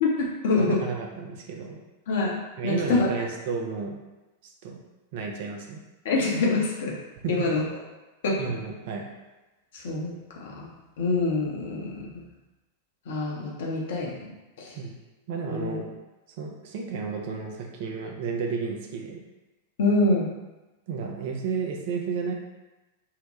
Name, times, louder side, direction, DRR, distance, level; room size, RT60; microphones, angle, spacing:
voice 1, 0.0-0.8 2.1-2.4 2.6-3.1 6.0-6.9 7.3-7.6 8.2-8.4 9.7-10.7 11.0-12.1 13.1-14.3 14.6-14.8 15.5-15.7 19.8-20.3, left 3 dB, 55° left, -3 dB, 0.7 m, -25 dB
voice 2, 0.6-1.8 2.6-4.0 4.6-4.8 5.1-5.8 7.2-7.3 8.4-9.1 14.7-15.0 15.3-15.9 16.4-19.2 20.9-22.3, right 5 dB, 50° right, 1 dB, 0.4 m, -32 dB
2.7 x 2.1 x 3.1 m, 1.1 s
figure-of-eight pair, 90°, 0 cm